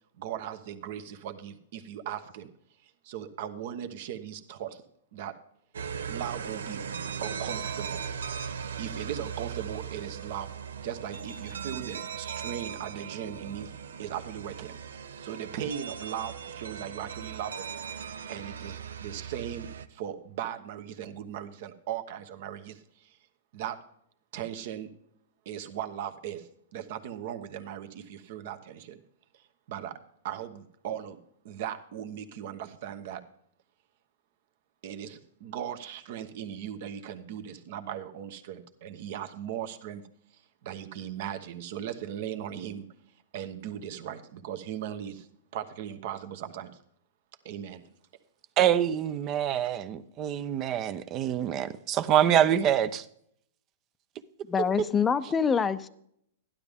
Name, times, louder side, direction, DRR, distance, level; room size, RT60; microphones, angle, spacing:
voice 1, 0.2-2.5 2.8-4.8 5.1-5.4 6.1-6.8 7.2-8.1 8.8-10.5 10.8-13.7 14.0-14.8 15.2-17.6 18.0-23.2 23.5-23.8 24.3-24.9 25.4-29.0 29.7-30.0 30.2-31.2 31.4-33.2 34.8-40.0 40.6-42.9 43.3-45.3 45.5-46.7 47.4-47.8, right 10 dB, 55° right, 9 dB, 1.1 m, -38 dB
sound 1, 5.7-19.9, right 7 dB, 85° right, 0.7 m, -38 dB
voice 2, 48.6-53.1, right 10 dB, 35° right, 12 dB, 0.6 m, -25 dB
voice 3, 54.5-55.9, left 6 dB, 15° left, 14 dB, 0.6 m, -25 dB
12.0 x 11.5 x 3.6 m, 0.69 s
hypercardioid pair, 130°, 0 cm